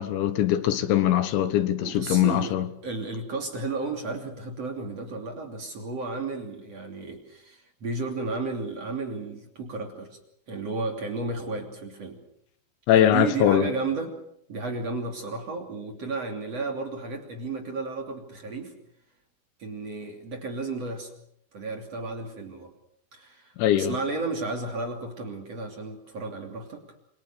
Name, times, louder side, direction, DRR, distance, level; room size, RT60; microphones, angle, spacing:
voice 1, 0.0-2.7 12.9-13.7 23.6-24.0, left 11 dB, 75° left, 3.5 m, -22 dB
voice 2, 1.8-2.5 2.8-10.2 10.5-12.2 13.0-14.2 14.5-18.7 19.6-21.1 21.5-22.7 23.1-26.8, right 3 dB, 35° right, 3.3 m, -33 dB
28.5 x 23.5 x 6.8 m
omnidirectional pair, 5.6 m